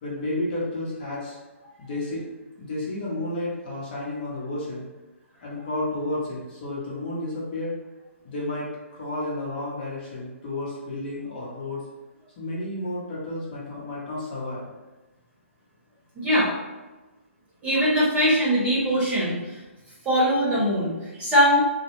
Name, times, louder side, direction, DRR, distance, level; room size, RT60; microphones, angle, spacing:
voice 1, 0.0-1.4 1.8-2.3 2.6-4.9 5.4-7.8 8.2-8.7 8.9-11.8 12.4-14.7, left 2 dB, 40° left, -6 dB, 0.9 m, -31 dB
voice 2, 16.2-16.5 17.6-19.5 20.0-20.9 21.2-21.6, equal, 15° right, -8 dB, 0.8 m, -21 dB
2.3 x 2.0 x 3.0 m, 1.2 s
hypercardioid pair, 145°, 7 cm